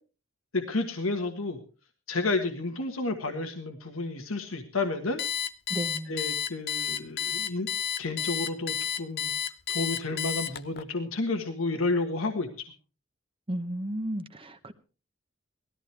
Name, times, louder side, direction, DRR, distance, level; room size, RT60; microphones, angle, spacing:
voice 1, 0.5-1.6 2.1-5.2 6.1-7.7 8.0-9.3 9.7-12.7, left 3 dB, 85° left, 5 dB, 1.5 m, -31 dB
Alarm, 5.2-10.8, left 8 dB, 50° left, 0.7 m, -31 dB
voice 2, 5.7-6.1 13.5-14.7, right 1 dB, 25° right, 9 dB, 0.9 m, -33 dB
18.5 x 13.5 x 3.4 m, 0.35 s
head